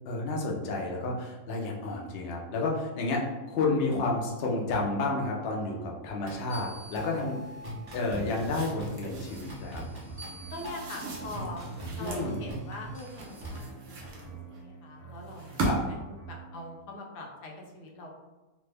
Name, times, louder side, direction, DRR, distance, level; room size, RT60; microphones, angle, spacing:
voice 1, 0.1-7.4 7.9-9.8 12.0-12.4 15.6-15.8, left 3 dB, 70° left, -1 dB, 0.5 m, -31 dB
sound 1, 6.3-13.6, right 1 dB, 25° right, 0.5 m, -41 dB
sound 2, 7.9-9.6 10.5-12.3 13.0-14.6 15.3-16.1, right 2 dB, 70° right, 1.0 m, -37 dB
sound 3, 9.2-16.8, right 5 dB, 50° left, 0.8 m, -48 dB
voice 2, 10.5-11.7 12.0-18.1, left 2 dB, 85° left, 0 dB, 1.2 m, -43 dB
3.1 x 2.0 x 3.2 m, 1.1 s
omnidirectional pair, 1.7 m